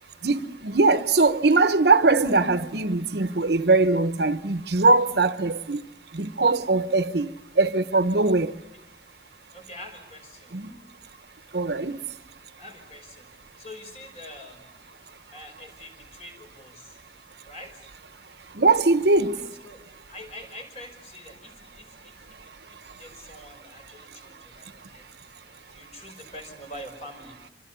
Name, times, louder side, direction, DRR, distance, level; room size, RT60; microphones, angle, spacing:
voice 1, 0.2-5.8 6.1-7.3 7.6-8.5 10.5-10.7 11.5-12.0 18.6-19.4, right 3 dB, 70° right, 1.0 m, -21 dB
voice 2, 9.5-10.6 12.6-13.3 13.6-14.7 15.3-17.0 17.4-17.9 19.6-19.8 20.1-25.4 25.7-27.4, left 1 dB, 35° left, 5.4 m, -45 dB
26.5 x 26.0 x 6.9 m
head